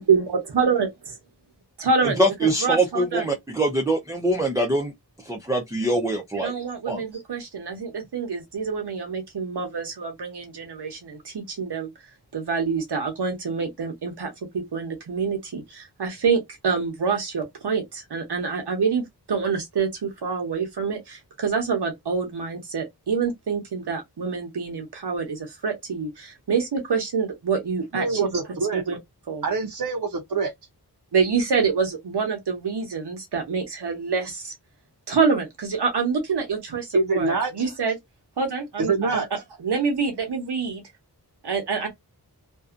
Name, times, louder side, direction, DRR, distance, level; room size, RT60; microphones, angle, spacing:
voice 1, 0.0-0.9 1.8-3.3 6.3-11.9 12.3-28.4 28.7-29.0 29.3-29.4 31.1-34.5 35.1-38.0 38.4-40.8 41.4-41.9, right 5 dB, 85° right, 0.9 m, -26 dB
voice 2, 2.2-4.9 5.2-6.5 6.9-7.0, right 1 dB, 10° right, 0.5 m, -23 dB
voice 3, 27.9-28.8 29.4-30.5 36.9-37.5 38.8-39.3, right 4 dB, 60° right, 0.7 m, -25 dB
2.6 x 2.3 x 2.4 m
wide cardioid pair, 65°, 39 cm